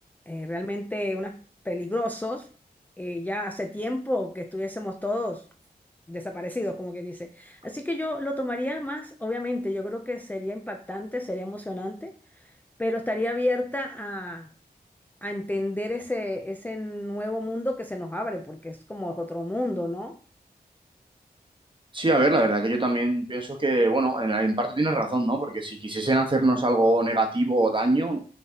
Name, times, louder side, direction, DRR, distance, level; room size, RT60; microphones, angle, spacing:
voice 1, 0.3-1.4 1.6-2.5 3.0-5.4 6.1-12.5 12.8-14.5 15.2-20.2, left 1 dB, 10° left, 0.4 m, -31 dB
voice 2, 21.9-28.2, right 2 dB, 30° right, 1.0 m, -23 dB
5.8 x 3.2 x 2.8 m
wide cardioid pair, 65°, 17 cm